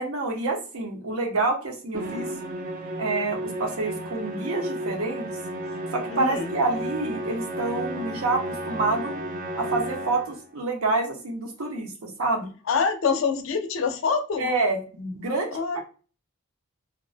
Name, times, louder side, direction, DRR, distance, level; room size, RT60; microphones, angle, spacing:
voice 1, 0.0-2.3 3.0-5.3 5.9-9.1 9.5-12.5 14.4-15.8, right 3 dB, 75° right, 2 dB, 0.6 m, -27 dB
Musical instrument, 1.9-10.5, right 1 dB, 40° right, 0.3 m, -33 dB
voice 2, 6.1-6.5 12.7-14.5 15.5-15.8, left 5 dB, 60° left, 7 dB, 0.4 m, -25 dB
2.4 x 2.2 x 2.4 m, 0.36 s
head